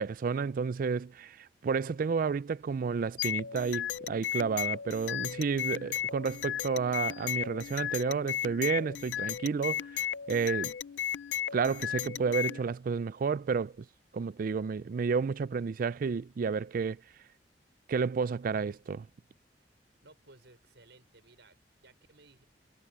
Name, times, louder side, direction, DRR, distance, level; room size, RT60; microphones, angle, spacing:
voice 1, 0.0-10.8 11.5-13.9 14.1-17.0 17.9-19.1, right 5 dB, 50° right, 0.4 m, -31 dB
sound 1, 3.2-12.6, left 10 dB, 90° left, 0.5 m, -35 dB
voice 2, 20.0-22.5, right 2 dB, 85° right, 5.6 m, -59 dB
head